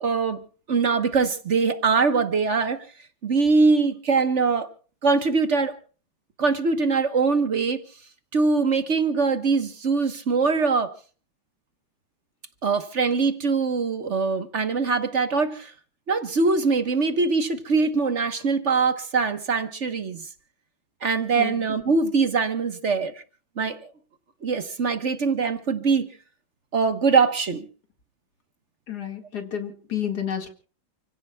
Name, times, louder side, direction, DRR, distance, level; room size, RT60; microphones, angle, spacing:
voice 1, 0.0-0.4 0.7-2.9 3.2-4.7 5.0-5.8 6.4-7.8 8.3-10.9 12.6-15.7 16.1-20.2 21.0-23.1 23.6-23.9 24.4-26.1 26.7-27.7, right 4 dB, 45° right, 1.2 m, -22 dB
voice 2, 28.9-30.5, left 9 dB, 55° left, 2.4 m, -30 dB
29.5 x 16.5 x 2.3 m
omnidirectional pair, 2.1 m